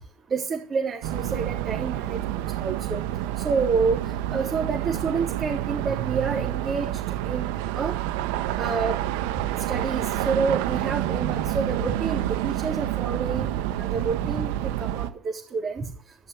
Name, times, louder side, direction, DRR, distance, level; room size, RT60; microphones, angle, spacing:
voice 1, 0.3-3.0 3.4-4.0 4.3-8.0 8.6-9.0 9.7-13.5 13.8-15.9, right 5 dB, 30° right, -2 dB, 3.9 m, -28 dB
sound 1, 1.0-15.1, right 13 dB, 75° right, 1.4 m, -28 dB
16.0 x 6.7 x 10.0 m, 0.42 s
supercardioid pair, 120°, 0 cm